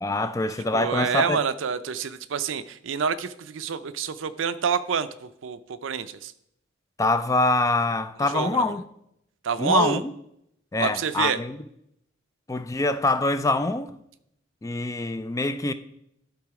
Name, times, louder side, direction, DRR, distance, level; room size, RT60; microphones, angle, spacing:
voice 1, 0.0-1.4 7.0-8.8 9.6-10.1 10.7-11.6 12.5-14.0 14.6-15.7, left 2 dB, 15° left, 0.4 m, -24 dB
voice 2, 0.7-6.3 8.3-8.8 9.4-10.0 10.8-11.4, right 6 dB, 80° right, 0.5 m, -27 dB
12.0 x 4.1 x 4.7 m
head